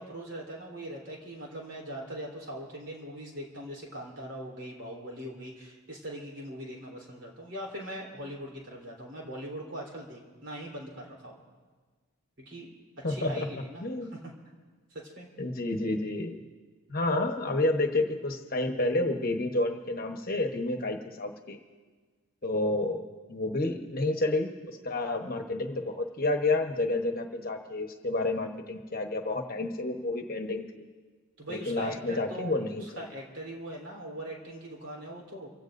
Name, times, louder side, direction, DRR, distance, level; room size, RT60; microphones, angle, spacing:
voice 1, 0.0-11.4 12.4-12.7 13.1-14.3 14.9-15.3 31.4-32.5 32.8-35.5, right 1 dB, 55° right, -2 dB, 3.6 m, -41 dB
voice 2, 13.0-13.5 13.8-14.1 15.4-16.4 16.9-21.6 22.4-23.0 23.3-30.8 31.5-33.0, left 2 dB, 40° left, 4 dB, 1.1 m, -30 dB
28.0 x 16.5 x 2.6 m, 1.4 s
head